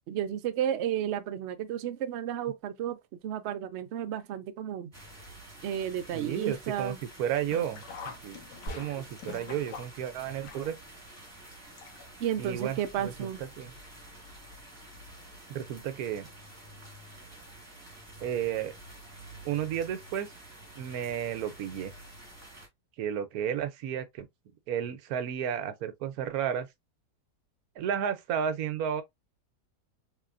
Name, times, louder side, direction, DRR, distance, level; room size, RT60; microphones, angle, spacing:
voice 1, 0.1-3.0 3.2-4.9 5.6-7.0 12.2-13.4, right 10 dB, 90° right, 0.6 m, -32 dB
sound 1, 4.9-22.7, right 1 dB, 10° right, 1.5 m, -49 dB
voice 2, 6.1-8.4 8.8-10.8 12.4-13.7 15.5-16.3 18.2-18.7 19.4-20.3 20.8-21.9 23.0-24.3 24.7-26.7 27.8-29.0, right 9 dB, 70° right, 1.1 m, -32 dB
Sink (filling or washing), 7.4-12.3 12.6-12.7 13.8-13.9 14.2-14.3, left 6 dB, 85° left, 1.5 m, -46 dB
sound 2, 8.7-9.4, right 1 dB, 55° left, 1.7 m, -41 dB
3.7 x 3.3 x 2.5 m
omnidirectional pair, 1.8 m